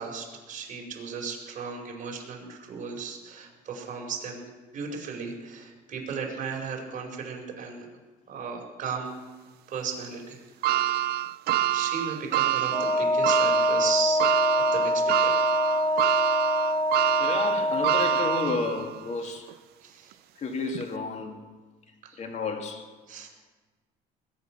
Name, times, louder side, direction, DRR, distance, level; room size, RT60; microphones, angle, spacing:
voice 1, 0.0-7.9 8.3-9.2 9.7-10.4 10.6-10.8 11.7-14.2 14.5-15.3 15.6-16.4 19.2-19.3 19.8-20.2 22.0-22.2 23.1-23.3, right 5 dB, 50° right, 0 dB, 4.6 m, -36 dB
sound 1, 10.6-19.0 19.5-19.6 20.7-20.8, right 14 dB, 70° right, 0.4 m, -26 dB
Wind instrument woodwind instrument, 12.7-18.4, left 1 dB, 25° left, 5.5 m, -25 dB
voice 2, 17.2-19.5 20.4-21.4 22.2-22.9, left 4 dB, 40° left, 3 dB, 2.4 m, -31 dB
21.0 x 10.0 x 6.0 m, 1.3 s
cardioid pair, 110°, 17 cm